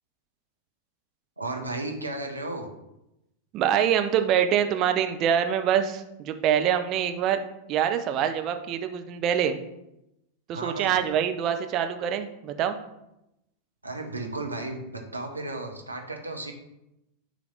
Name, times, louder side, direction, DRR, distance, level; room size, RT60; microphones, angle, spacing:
voice 1, 1.4-2.7 10.5-11.0 13.8-16.5, right 2 dB, 85° right, 2 dB, 1.0 m, -34 dB
voice 2, 3.5-7.4 7.7-9.6 10.5-12.8, right 9 dB, 35° right, 7 dB, 0.6 m, -25 dB
9.7 x 3.3 x 4.0 m, 0.88 s
figure-of-eight pair, 90°, 0 cm